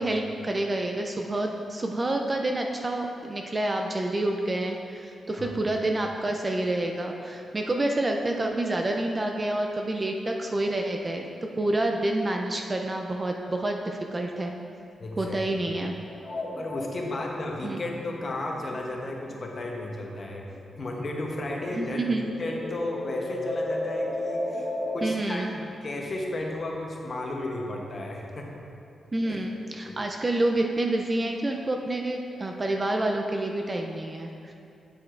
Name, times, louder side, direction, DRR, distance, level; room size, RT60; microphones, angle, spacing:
voice 1, 0.0-11.3 11.6-14.6 15.2-16.0 17.6-17.8 21.7-22.2 25.0-25.5 29.1-34.5, right 1 dB, 20° right, 2 dB, 0.4 m, -28 dB
voice 2, 15.0-15.4 16.6-20.4 20.8-28.6 29.2-29.4 29.9-30.0, left 2 dB, 35° left, 0 dB, 0.8 m, -34 dB
sound 1, 16.1-20.2 20.5-25.1, left 1 dB, 15° left, 1.3 m, -34 dB
8.4 x 7.6 x 2.5 m, 2.7 s
wide cardioid pair, 160°, 0 cm